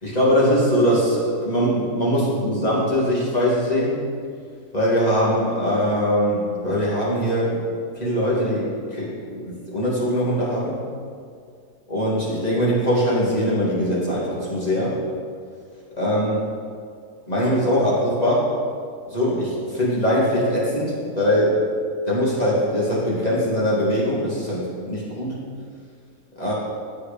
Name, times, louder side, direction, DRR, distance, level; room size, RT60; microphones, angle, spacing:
voice 1, 0.0-4.0 4.7-7.7 8.0-10.8 11.9-14.9 16.0-16.5 17.3-18.5 19.1-21.6 22.0-25.4 26.4-26.5, equal, 25° left, -7 dB, 2.7 m, -21 dB
8.7 x 8.4 x 5.3 m, 2.2 s
omnidirectional pair, 1.7 m